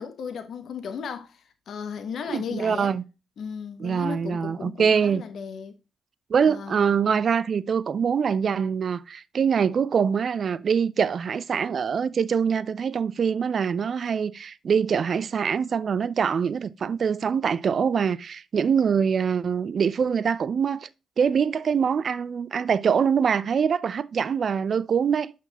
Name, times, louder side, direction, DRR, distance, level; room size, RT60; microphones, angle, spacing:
voice 1, 0.0-2.9 3.4-5.8 6.5-6.9, left 6 dB, 65° left, 0.8 m, -35 dB
voice 2, 2.3-3.0 3.8-5.2 6.3-20.9 21.2-25.3, right 6 dB, 55° right, 0.3 m, -24 dB
5.9 x 5.9 x 2.8 m
hypercardioid pair, 45°, 0 cm